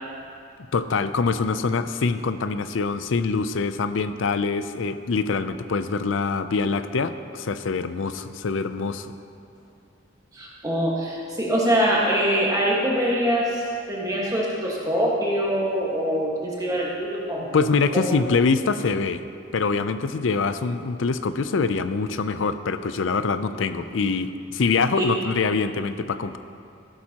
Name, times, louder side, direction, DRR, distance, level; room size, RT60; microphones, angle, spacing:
voice 1, 0.7-9.1 17.5-19.2 19.5-26.4, left 4 dB, 75° left, 11 dB, 0.5 m, -24 dB
voice 2, 10.3-17.5 18.1-18.2 25.0-25.1, equal, 20° right, -5 dB, 1.5 m, -24 dB
15.0 x 11.5 x 2.9 m, 2.6 s
head